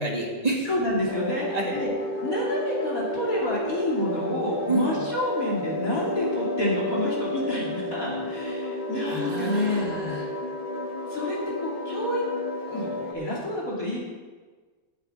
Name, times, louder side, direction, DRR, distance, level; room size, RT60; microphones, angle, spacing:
voice 1, 0.0-0.7 1.5-1.7 4.6-5.0 9.1-10.3, right 2 dB, 20° right, -1 dB, 1.7 m, -28 dB
voice 2, 0.6-1.9 2.2-9.9 11.1-12.2 12.7-14.0, left 1 dB, 40° left, -5 dB, 3.0 m, -29 dB
sound 1, 1.1-13.1, left 1 dB, 20° left, 1.1 m, -31 dB
9.0 x 7.1 x 8.7 m, 1.4 s
omnidirectional pair, 2.3 m